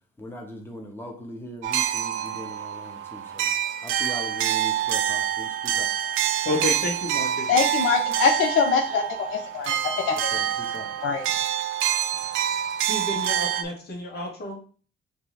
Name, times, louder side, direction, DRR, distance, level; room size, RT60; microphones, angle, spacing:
voice 1, 0.2-3.5 3.8-5.9 10.3-10.9, left 1 dB, 10° left, 1 dB, 1.0 m, -40 dB
sound 1, 1.6-13.6, right 10 dB, 85° right, 0.4 m, -26 dB
voice 2, 6.4-7.5 12.8-14.6, left 2 dB, 55° left, 0 dB, 1.6 m, -30 dB
voice 3, 7.5-10.4 11.0-11.2, left 5 dB, 80° left, 4 dB, 0.5 m, -24 dB
5.2 x 2.7 x 3.1 m, 0.42 s
cardioid pair, 90°, 20 cm